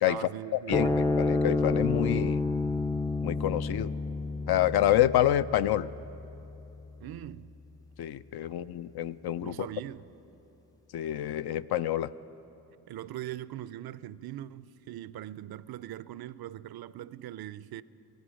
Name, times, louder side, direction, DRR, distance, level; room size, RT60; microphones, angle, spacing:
voice 1, 0.0-1.2 7.0-7.6 9.4-10.1 12.9-17.8, right 13 dB, 60° right, 0.5 m, -41 dB
voice 2, 0.7-2.4 3.2-3.9 4.5-5.9 8.0-9.5 10.9-12.1, left 12 dB, 65° left, 0.5 m, -27 dB
sound 1, 0.7-7.4, left 3 dB, 10° left, 0.4 m, -30 dB
16.5 x 13.0 x 6.3 m
supercardioid pair, 55°, 42 cm